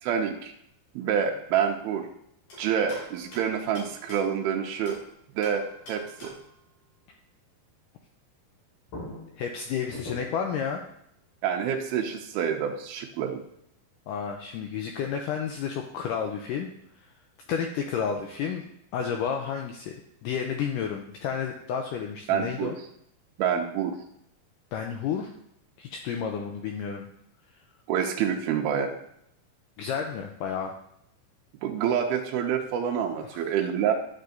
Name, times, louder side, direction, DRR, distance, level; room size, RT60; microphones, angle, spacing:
voice 1, 0.0-0.5 1.0-2.1 2.6-5.0 5.4-6.3 11.4-13.4 22.3-22.7 23.4-24.0 27.9-29.0 31.6-33.9, right 8 dB, 85° right, 2 dB, 2.6 m, -27 dB
sound 1, 2.5-5.1 5.4-6.6 8.5-8.6 8.9-10.5, left 1 dB, 60° left, 3.9 m, -44 dB
voice 2, 9.4-10.8 14.1-16.7 17.5-18.6 18.9-19.9 20.2-22.8 24.7-25.3 25.8-27.1 29.8-30.8 33.3-33.4, left 7 dB, 85° left, 3 dB, 1.9 m, -31 dB
11.0 x 6.6 x 2.7 m, 0.73 s
omnidirectional pair, 4.4 m